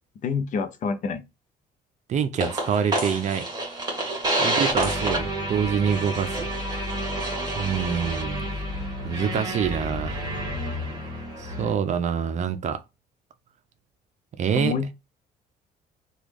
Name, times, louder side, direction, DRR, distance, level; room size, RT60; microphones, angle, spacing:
voice 1, 0.2-1.2 4.4-4.5 14.5-14.9, left 5 dB, 50° left, 0.6 m, -27 dB
voice 2, 2.1-3.5 4.4-6.5 7.5-8.5 9.0-10.2 11.4-12.8 14.3-14.8, right 7 dB, 45° right, 0.5 m, -26 dB
sound 1, 2.4-11.7, right 1 dB, 25° right, 1.4 m, -29 dB
3.0 x 2.3 x 3.4 m
cardioid pair, 110°, 17 cm